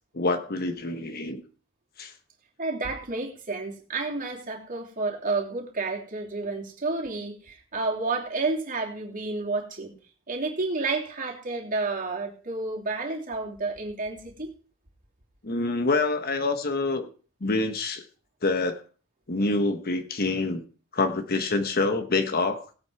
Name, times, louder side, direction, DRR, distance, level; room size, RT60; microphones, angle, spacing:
voice 1, 0.1-1.4 2.0-2.1 15.4-17.1 17.4-18.0 18.4-18.8 19.3-20.6 20.9-22.7, left 3 dB, 45° left, 8 dB, 1.2 m, -26 dB
voice 2, 2.6-9.9 10.3-14.5, right 3 dB, 40° right, 0 dB, 3.0 m, -30 dB
18.0 x 8.8 x 4.7 m, 0.38 s
head